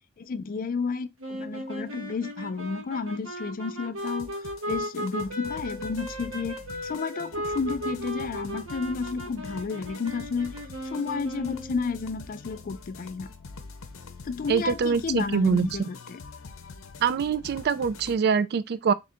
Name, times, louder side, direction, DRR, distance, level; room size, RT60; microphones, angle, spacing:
voice 1, 0.2-4.4 4.7-6.6 6.8-10.5 10.8-13.3 14.2-16.2, left 4 dB, 45° left, 0.4 m, -31 dB
sound 1, 1.2-11.9, equal, 85° right, 1.3 m, -36 dB
sound 2, 4.0-18.2, left 4 dB, 80° left, 0.6 m, -45 dB
voice 2, 14.5-15.7 17.0-18.9, right 6 dB, 50° right, 0.3 m, -24 dB
3.6 x 2.5 x 4.2 m
head